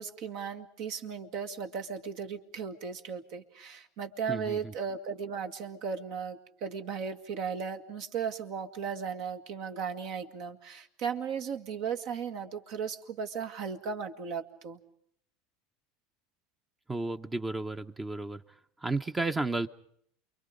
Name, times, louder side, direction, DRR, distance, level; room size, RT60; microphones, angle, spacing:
voice 1, 0.0-14.8, right 6 dB, 60° right, 7 dB, 1.9 m, -36 dB
voice 2, 4.3-4.7 16.9-18.4 18.8-19.7, right 3 dB, 15° right, 8 dB, 0.8 m, -32 dB
29.0 x 23.0 x 5.1 m, 0.67 s
hypercardioid pair, 90°, 0 cm